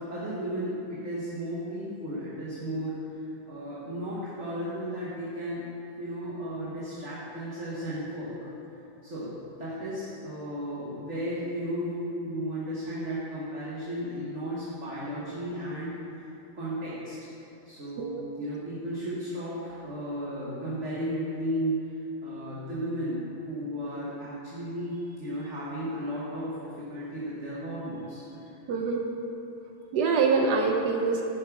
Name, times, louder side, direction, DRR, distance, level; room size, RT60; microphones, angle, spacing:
voice 1, 0.0-2.9 3.5-5.7 6.0-8.5 9.0-9.3 9.6-15.9 16.5-17.1 17.6-21.9 22.2-28.5, equal, 40° right, -8 dB, 1.4 m, -34 dB
voice 2, 28.7-29.0 29.9-31.2, right 4 dB, 65° right, 2 dB, 1.1 m, -25 dB
10.5 x 5.3 x 4.7 m, 2.8 s
omnidirectional pair, 2.2 m